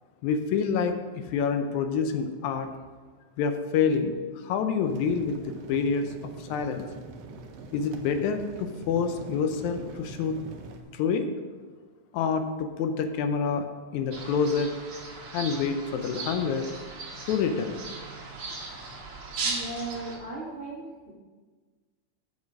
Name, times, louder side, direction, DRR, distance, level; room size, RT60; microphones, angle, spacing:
voice 1, 0.2-1.0 1.3-2.7 3.4-4.2 4.4-6.9 7.7-10.4 10.9-11.3 12.1-13.7 13.9-14.7 15.3-16.7 17.3-17.8, left 6 dB, 85° left, 7 dB, 2.1 m, -27 dB
sound 1, 4.9-10.8, right 4 dB, 70° right, 1.7 m, -44 dB
sound 2, 14.1-20.2, right 3 dB, 50° right, 1.8 m, -37 dB
voice 2, 19.4-21.1, right 3 dB, 20° right, -8 dB, 2.0 m, -37 dB
7.1 x 6.5 x 6.3 m, 1.4 s
omnidirectional pair, 3.3 m